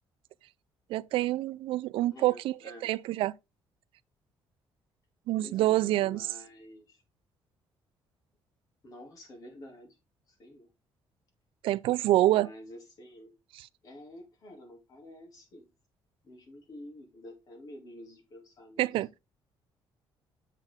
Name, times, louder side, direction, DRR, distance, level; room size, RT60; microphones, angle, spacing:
voice 1, 0.9-3.3 5.3-6.3 11.6-12.5 13.5-13.7 18.8-19.1, right 15 dB, 90° right, 0.4 m, -27 dB
voice 2, 2.1-2.9 5.4-7.0 8.8-10.0 10.3-10.7 12.3-13.3 13.8-15.7 16.2-18.9, left 1 dB, 40° left, 2.7 m, -49 dB
7.5 x 6.5 x 3.6 m
cardioid pair, 180°, 9 cm